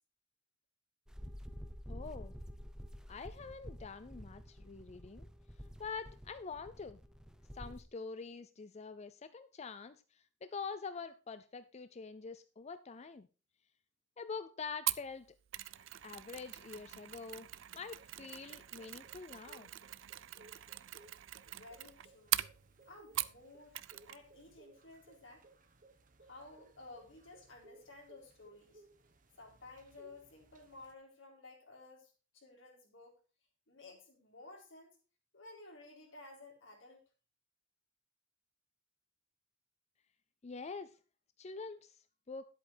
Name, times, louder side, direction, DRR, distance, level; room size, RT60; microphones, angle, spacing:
sound 1, 1.1-7.8, equal, 5° right, 0.9 m, -49 dB
voice 1, 1.9-2.4 3.1-5.3 5.8-7.0 7.5-13.3 14.2-15.3 15.8-17.5 17.7-19.7 40.4-41.0 41.4-42.5, left 5 dB, 35° left, 12 dB, 0.5 m, -46 dB
Mechanisms, 14.9-23.5 23.7-24.2 24.5-24.6, right 15 dB, 90° right, 0.5 m, -41 dB
sound 2, 15.7-30.9, right 2 dB, 45° right, 1.3 m, -64 dB
voice 2, 21.5-22.4 22.9-23.8 24.1-25.4 26.3-28.8 29.4-33.2 33.7-35.0 35.3-37.0, left 2 dB, 85° left, 0 dB, 3.9 m, -55 dB
10.5 x 8.2 x 4.4 m, 0.33 s
head